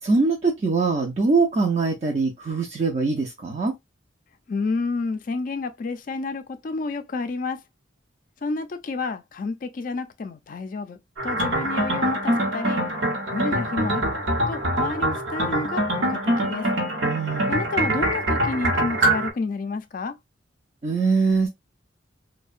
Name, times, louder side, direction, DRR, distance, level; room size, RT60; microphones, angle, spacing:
voice 1, 0.0-3.8 17.0-17.5 20.8-21.5, right 4 dB, 35° right, 0.4 m, -22 dB
voice 2, 4.5-7.6 8.4-11.0 11.2-12.8 13.3-14.1 14.5-16.7 17.5-20.1, left 3 dB, 45° left, 0.3 m, -30 dB
sound 1, 11.2-19.3, right 1 dB, 75° right, 0.8 m, -24 dB
2.7 x 2.1 x 2.4 m
head